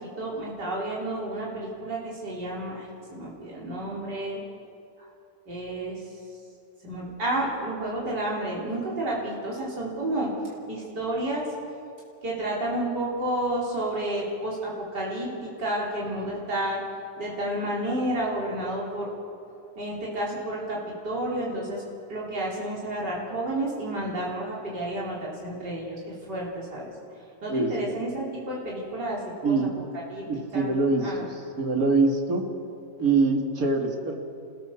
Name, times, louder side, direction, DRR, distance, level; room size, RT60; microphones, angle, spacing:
voice 1, 0.0-4.4 5.0-5.1 5.5-6.1 6.8-10.3 10.7-11.4 12.2-16.8 17.2-19.1 19.8-21.8 22.1-26.9 27.4-29.7 30.1-30.2 30.5-31.3, right 1 dB, 75° right, -5 dB, 4.3 m, -31 dB
voice 2, 27.5-27.8 29.4-29.7 30.2-31.3 31.6-32.4 33.0-34.1, right 3 dB, 55° right, 2 dB, 2.7 m, -24 dB
29.0 x 16.0 x 7.1 m, 2.5 s
omnidirectional pair, 1.8 m